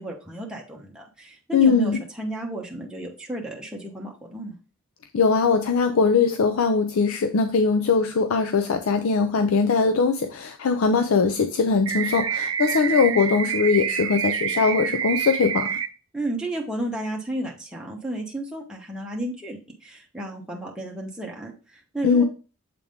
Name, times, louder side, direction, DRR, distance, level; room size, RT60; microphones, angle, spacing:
voice 1, 0.0-4.6 16.1-22.2, right 1 dB, 5° right, -2 dB, 1.0 m, -33 dB
voice 2, 1.5-2.0 5.1-15.8 22.0-22.2, left 5 dB, 85° left, 7 dB, 0.5 m, -21 dB
sound 1, 11.9-15.9, right 8 dB, 80° right, 0.6 m, -27 dB
7.6 x 3.6 x 3.5 m, 0.34 s
head